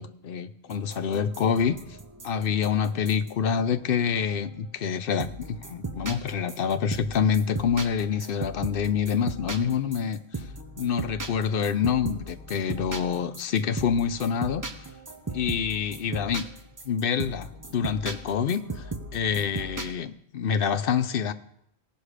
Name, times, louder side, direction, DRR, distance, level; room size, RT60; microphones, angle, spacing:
voice 1, 0.0-1.8 2.2-10.5 10.8-14.9 15.3-16.4 16.8-21.3, left 7 dB, 65° left, 12 dB, 0.8 m, -27 dB
sound 1, 0.7-4.6 5.2-19.9, right 3 dB, 20° right, 0.7 m, -38 dB
17.5 x 6.1 x 4.9 m, 0.74 s
omnidirectional pair, 1.1 m